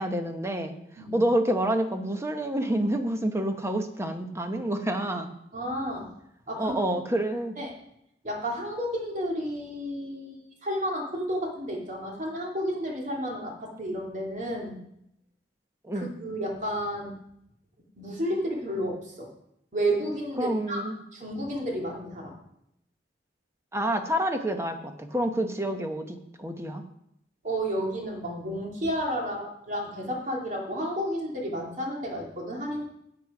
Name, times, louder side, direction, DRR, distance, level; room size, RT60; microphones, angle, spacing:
voice 1, 0.0-5.3 6.6-7.6 15.8-16.1 20.4-21.0 23.7-26.8, right 1 dB, 15° right, 6 dB, 0.9 m, -28 dB
voice 2, 5.5-6.1 6.5-6.8 7.6-7.7 8.2-14.8 15.9-17.1 18.0-19.3 19.7-20.8 21.1-22.3 27.4-32.8, equal, 45° right, 0 dB, 2.2 m, -31 dB
10.0 x 8.0 x 4.8 m, 0.77 s
head